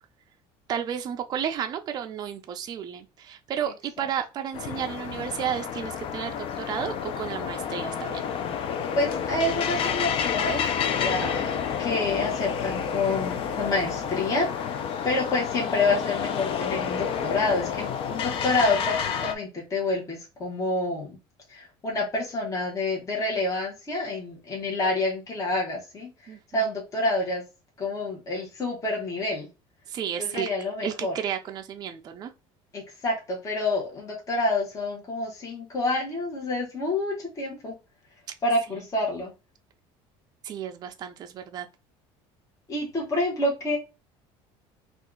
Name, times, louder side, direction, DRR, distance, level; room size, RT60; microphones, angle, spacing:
voice 1, 0.7-8.2 26.3-26.7 29.9-30.5 30.8-32.3 40.4-41.7, right 9 dB, 35° right, 0.4 m, -32 dB
sound 1, 4.5-19.4, left 7 dB, 45° left, 0.5 m, -29 dB
voice 2, 8.9-21.2 21.5-26.1 26.5-27.4 27.8-29.5 30.2-31.1 32.7-37.7 38.4-39.3 42.7-43.8, left 2 dB, 25° left, 1.1 m, -28 dB
2.7 x 2.4 x 3.7 m
cardioid pair, 135°, 13 cm